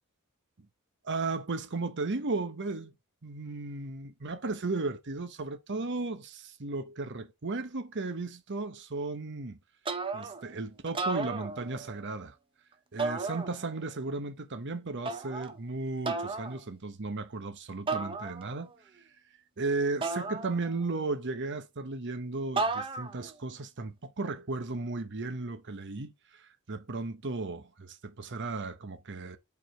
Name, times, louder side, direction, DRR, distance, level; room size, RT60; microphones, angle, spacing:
voice 1, 1.0-2.9 3.2-9.6 10.1-12.3 12.9-18.7 19.6-29.4, right 3 dB, 55° right, 0.9 m, -35 dB
sound 1, 9.8-10.5 10.9-12.0 13.0-13.9 15.0-15.6 16.0-16.6 17.9-18.7 20.0-21.0 22.6-23.3, right 3 dB, 25° right, 0.7 m, -34 dB
5.1 x 4.7 x 4.4 m
head